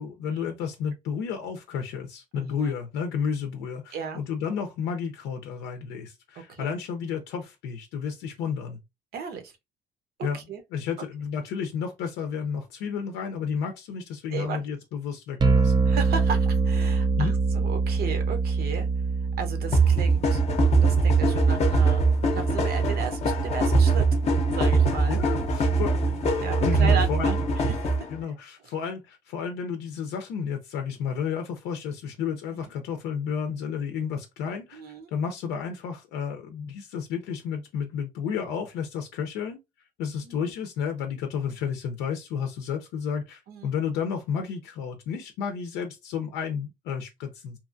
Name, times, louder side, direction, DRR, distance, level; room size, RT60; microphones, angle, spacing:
voice 1, 0.0-8.8 10.2-10.4 10.7-15.9 17.2-17.3 25.1-25.9 26.6-27.4 28.1-34.8 35.1-39.6 40.0-47.6, left 7 dB, 90° left, 0.5 m, -31 dB
voice 2, 2.3-2.7 3.9-4.2 6.5-6.7 9.1-9.5 10.3-10.6 14.3-14.6 15.9-18.9 19.4-20.4 20.8-24.1 24.5-25.2 25.6-25.8 26.1-28.0 32.5-32.7 34.7-35.1 40.2-40.5 43.5-43.7, right 6 dB, 65° right, 0.8 m, -35 dB
sound 1, 15.4-25.4, right 4 dB, 25° right, 0.4 m, -27 dB
sound 2, 19.7-28.2, right 3 dB, 40° left, 0.6 m, -22 dB
2.8 x 2.3 x 2.5 m
cardioid pair, 110°, 17 cm